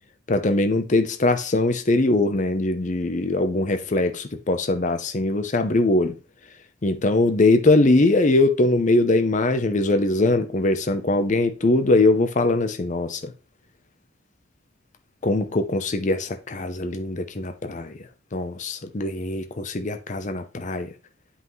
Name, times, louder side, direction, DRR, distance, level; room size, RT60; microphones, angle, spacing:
voice 1, 0.3-6.1 6.8-13.3 15.2-17.9 18.3-20.9, left 2 dB, 40° left, 0.7 m, -21 dB
10.0 x 5.4 x 3.1 m
head